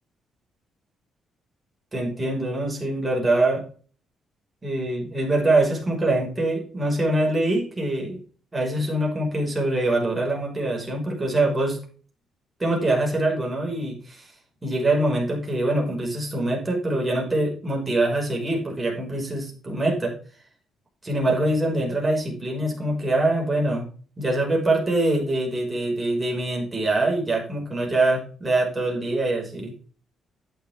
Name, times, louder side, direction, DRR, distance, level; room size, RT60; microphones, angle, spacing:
voice 1, 1.9-3.6 4.6-8.2 8.5-11.8 12.6-14.3 14.6-20.1 21.0-23.9 24.2-29.7, right 2 dB, 20° right, -1 dB, 5.9 m, -24 dB
11.5 x 8.6 x 3.7 m, 0.41 s
cardioid pair, 90°, 0 cm